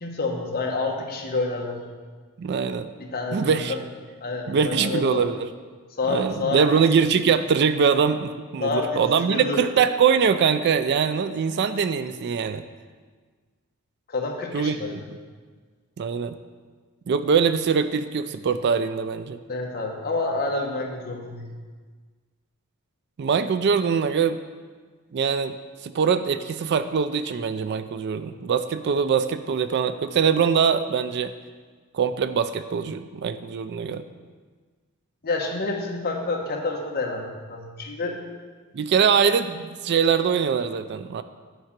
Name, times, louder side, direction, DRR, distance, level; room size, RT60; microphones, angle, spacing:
voice 1, 0.0-1.8 3.0-3.8 4.2-5.2 6.0-6.8 8.6-9.6 14.1-14.9 19.5-21.5 35.2-38.2, left 3 dB, 40° left, 0 dB, 1.1 m, -28 dB
voice 2, 2.4-2.9 3.3-3.7 4.5-5.5 6.1-12.6 14.5-15.0 16.0-16.3 17.1-19.4 23.2-24.4 25.1-25.6 25.8-31.3 31.9-34.0 38.7-41.2, right 6 dB, 50° right, 11 dB, 0.3 m, -23 dB
9.3 x 4.8 x 5.8 m, 1.5 s
head